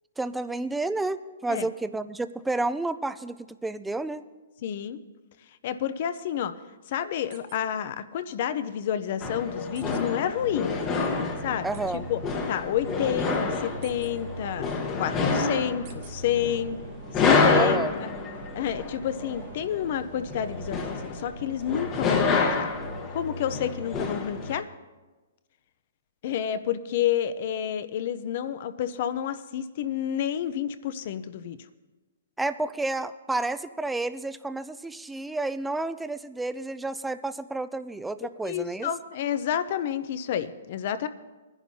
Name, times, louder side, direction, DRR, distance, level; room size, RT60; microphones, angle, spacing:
voice 1, 0.2-4.2 11.6-12.1 17.5-17.9 32.4-38.9, right 2 dB, 5° right, 12 dB, 0.3 m, -30 dB
voice 2, 4.6-5.0 5.6-6.5 6.9-10.8 11.4-11.7 11.9-12.2 12.5-14.7 15.0-16.8 17.1-18.1 18.5-22.7 23.1-24.7 26.2-31.6 38.4-41.1, left 9 dB, 45° left, 13 dB, 0.6 m, -29 dB
sound 1, 7.3-7.6 8.0-8.1 9.7-10.0 11.7-11.8 13.8-14.1 15.8-16.1, right 10 dB, 40° right, 1.3 m, -49 dB
sound 2, 9.2-24.6, left 4 dB, 25° left, 1.1 m, -28 dB
sound 3, 11.0-23.0, right 3 dB, 80° right, 3.5 m, -44 dB
21.5 x 10.5 x 2.8 m, 1.2 s
hypercardioid pair, 155°, 0 cm